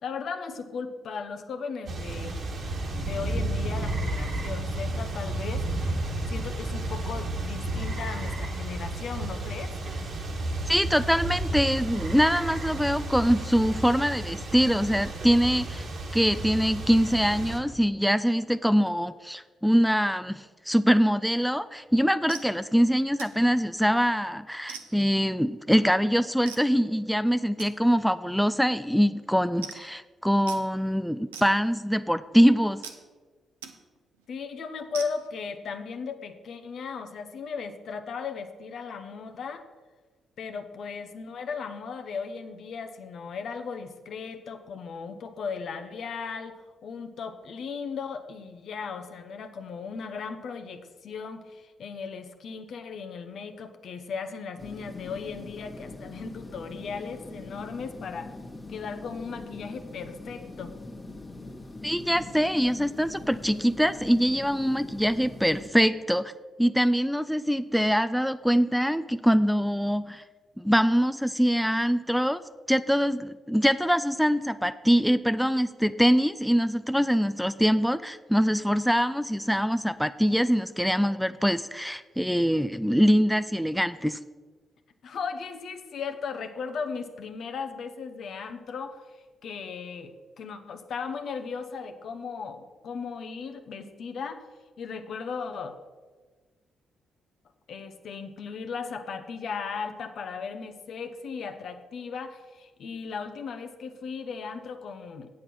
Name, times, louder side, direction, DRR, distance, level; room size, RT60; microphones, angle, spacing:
voice 1, 0.0-2.4 3.0-6.0 6.3-9.7 34.3-39.6 40.4-58.3 58.7-60.7 85.0-94.4 94.8-95.7 97.7-105.3, left 5 dB, 60° left, 7 dB, 0.9 m, -37 dB
sound 1, 1.9-17.6, right 1 dB, 60° right, 1.6 m, -32 dB
voice 2, 10.7-15.9 16.1-32.8 61.8-66.3 66.6-70.2 70.6-72.4 72.7-84.2, equal, ahead, 12 dB, 0.4 m, -24 dB
sound 2, 21.7-21.9 22.3-22.5 23.2-23.4 23.9-24.2 24.7-25.2 26.5-26.7 27.6-27.7 28.4-28.6 28.8-28.9 29.2-29.3 29.6-30.0 30.5-30.6 31.3-31.9 32.8-33.0 33.6-33.8 34.1-34.3 34.9-35.3, right 7 dB, 90° right, 0.6 m, -42 dB
sound 3, 54.6-65.7, left 2 dB, 25° left, 1.5 m, -42 dB
8.4 x 7.5 x 6.1 m, 1.4 s
hypercardioid pair, 45°, 0 cm